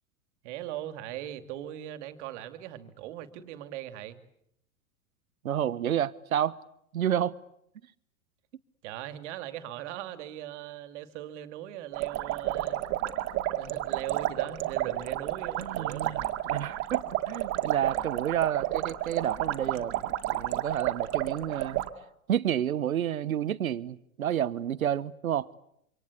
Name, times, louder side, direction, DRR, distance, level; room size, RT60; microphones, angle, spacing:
voice 1, 0.4-4.2 8.8-12.8 13.5-16.3, right 12 dB, 55° right, 2.6 m, -39 dB
voice 2, 5.4-6.6 6.9-7.4 15.6-21.8 22.3-25.5, right 10 dB, 75° right, 1.3 m, -30 dB
sound 1, 11.9-21.9, right 14 dB, 35° right, 2.2 m, -31 dB
27.5 x 25.5 x 8.3 m
hypercardioid pair, 100°, 42 cm